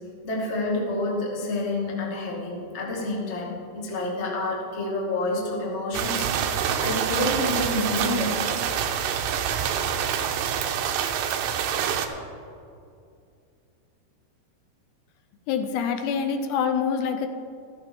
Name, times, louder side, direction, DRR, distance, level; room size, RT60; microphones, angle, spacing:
voice 1, 0.2-8.4, left 2 dB, 40° left, -3 dB, 1.0 m, -28 dB
sound 1, 5.9-12.1, right 8 dB, 90° right, 3.0 m, -26 dB
voice 2, 15.5-17.3, left 6 dB, 80° left, 7 dB, 2.8 m, -25 dB
14.5 x 14.0 x 3.6 m, 2.4 s
omnidirectional pair, 5.0 m